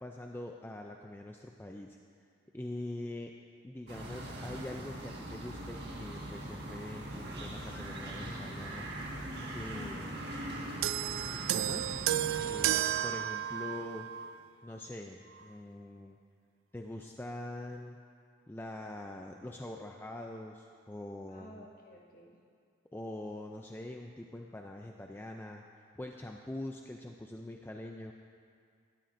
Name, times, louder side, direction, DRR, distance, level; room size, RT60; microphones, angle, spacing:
voice 1, 0.0-2.0 2.5-3.3 3.6-8.9 9.4-10.2 11.5-11.9 12.4-14.1 14.6-16.2 16.7-18.0 18.5-21.7 22.9-25.6 26.0-28.1, left 1 dB, 10° left, 2 dB, 0.4 m, -43 dB
sound 1, 3.9-12.8, right 1 dB, 55° right, 1.7 m, -41 dB
sound 2, 10.8-14.4 15.3-15.5, right 12 dB, 85° right, 0.3 m, -32 dB
voice 2, 21.3-22.4, left 2 dB, 45° left, -3 dB, 1.8 m, -51 dB
19.5 x 13.0 x 2.6 m, 2.2 s
head